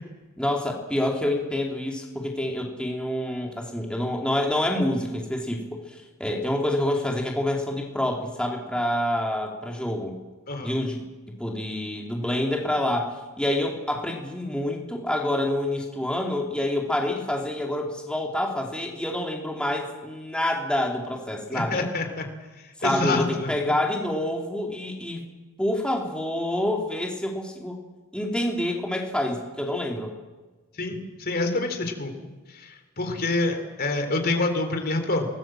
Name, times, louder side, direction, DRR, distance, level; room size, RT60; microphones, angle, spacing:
voice 1, 0.4-10.2 10.6-11.0 11.4-21.9 22.8-25.2 25.6-27.8 28.1-30.1, left 1 dB, 5° left, 0 dB, 3.0 m, -27 dB
voice 2, 21.5-22.3 22.8-23.5 30.8-32.1 32.5-35.3, left 2 dB, 45° left, 5 dB, 3.5 m, -27 dB
28.0 x 19.5 x 7.6 m, 1.3 s
head